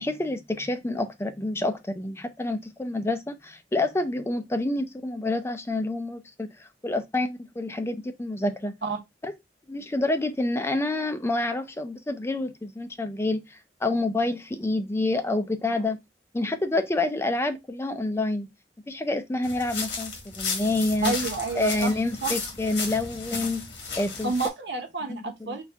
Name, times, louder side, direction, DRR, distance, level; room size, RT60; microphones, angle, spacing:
voice 1, 0.0-8.8 9.2-9.3 9.7-16.0 16.3-18.5 18.9-21.1 21.6-23.7 24.0-24.3 25.1-25.6, left 2 dB, 15° left, 0.4 m, -28 dB
sound 1, 19.4-24.5, left 4 dB, 90° left, 1.3 m, -34 dB
voice 2, 21.0-21.9 22.2-22.4 24.2-25.6, right 3 dB, 80° right, 1.1 m, -29 dB
4.2 x 2.4 x 3.4 m
head